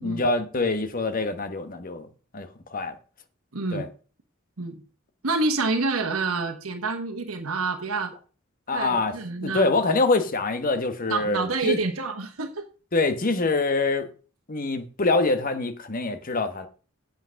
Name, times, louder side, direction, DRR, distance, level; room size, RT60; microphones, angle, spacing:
voice 1, 0.0-2.1 2.3-3.0 3.7-3.9 8.7-9.1 9.4-11.8 12.9-14.1 14.5-16.7, left 3 dB, 40° left, 1.1 m, -25 dB
voice 2, 3.5-3.8 4.6-4.7 5.2-8.1 8.7-9.7 11.1-12.7, right 3 dB, 85° right, 1.2 m, -27 dB
8.3 x 5.9 x 6.3 m
head